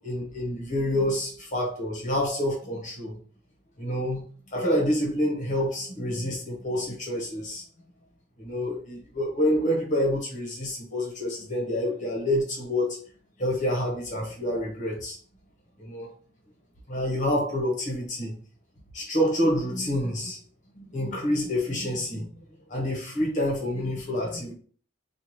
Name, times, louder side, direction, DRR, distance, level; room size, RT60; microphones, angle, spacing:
voice 1, 0.0-3.2 3.8-4.2 4.5-7.6 8.4-13.0 13.4-15.2 15.8-16.1 16.9-18.3 18.9-20.4 20.8-22.3 22.7-24.5, left 1 dB, 40° left, 1.2 m, -27 dB
4.4 x 2.4 x 3.1 m
head